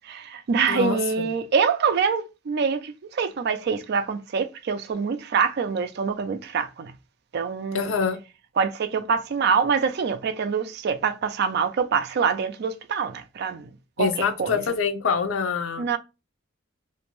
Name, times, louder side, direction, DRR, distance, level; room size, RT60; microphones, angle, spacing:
voice 1, 0.0-6.9 7.3-7.9 8.6-13.7 14.0-14.6 15.8-16.0, right 6 dB, 55° right, 0.3 m, -25 dB
voice 2, 0.7-1.3 7.7-8.2 14.0-15.9, left 6 dB, 80° left, 0.5 m, -25 dB
2.5 x 2.1 x 2.9 m
head